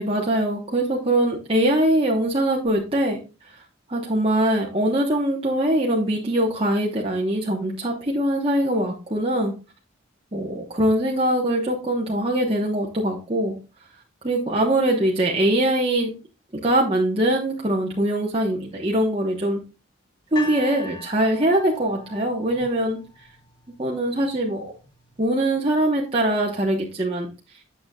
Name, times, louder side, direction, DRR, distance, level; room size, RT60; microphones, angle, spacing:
voice 1, 0.0-3.2 3.5-3.6 3.9-9.5 10.3-13.6 14.2-16.2 16.6-19.6 20.3-23.0 23.8-24.7 25.2-27.3, right 1 dB, 25° right, -2 dB, 1.1 m, -22 dB
sound 1, 20.4-23.5 24.3-24.4, left 3 dB, 25° left, 3.0 m, -38 dB
8.7 x 7.1 x 2.3 m, 0.31 s
head